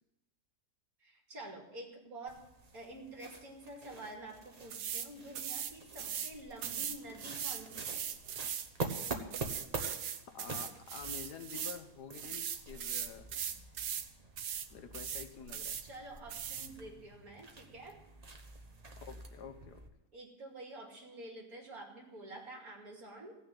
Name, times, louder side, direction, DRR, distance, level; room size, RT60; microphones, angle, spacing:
voice 1, 1.0-2.4 2.7-8.1 15.8-18.0 20.1-23.4, right 2 dB, 60° right, 0 dB, 2.9 m, -48 dB
sound 1, 2.3-19.9, right 3 dB, 30° right, 1.0 m, -47 dB
sound 2, 4.7-5.1 5.4-6.3 6.6-11.8 12.1-14.1 14.4-14.7 14.9-15.8 16.3-16.7, right 8 dB, 80° right, 1.4 m, -39 dB
voice 2, 10.3-13.3 14.7-15.8 19.1-19.8, left 7 dB, 90° left, 8 dB, 1.6 m, -48 dB
15.5 x 6.3 x 9.0 m, 0.96 s
omnidirectional pair, 1.7 m